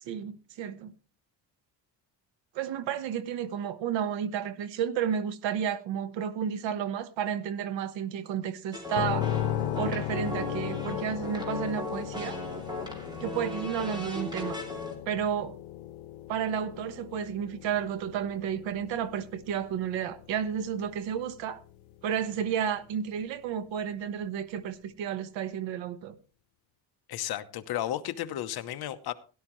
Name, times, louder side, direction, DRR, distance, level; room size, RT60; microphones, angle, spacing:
voice 1, 0.0-0.9 2.5-9.3 9.7-12.4 13.2-14.6 15.1-15.6 16.3-21.6 22.0-26.2, right 8 dB, 75° right, 1.3 m, -32 dB
sound 1, 8.7-14.9, left 2 dB, 10° right, 2.7 m, -37 dB
sound 2, 8.9-22.7, left 12 dB, 85° left, 0.9 m, -37 dB
voice 2, 27.1-29.1, left 12 dB, 55° left, 0.9 m, -33 dB
17.0 x 11.5 x 3.1 m
cardioid pair, 160°, 45 cm